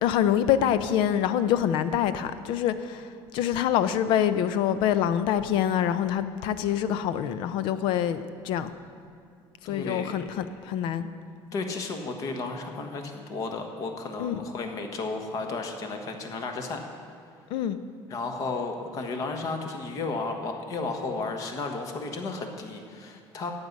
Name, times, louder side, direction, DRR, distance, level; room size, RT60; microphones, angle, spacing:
voice 1, 0.0-8.7 9.6-11.1 14.2-14.3 17.5-17.8, left 10 dB, 65° left, 0.6 m, -25 dB
voice 2, 9.6-10.2 11.5-16.8 18.1-23.5, left 3 dB, 40° left, 1.3 m, -33 dB
14.0 x 9.7 x 5.4 m
cardioid pair, 160°, 9 cm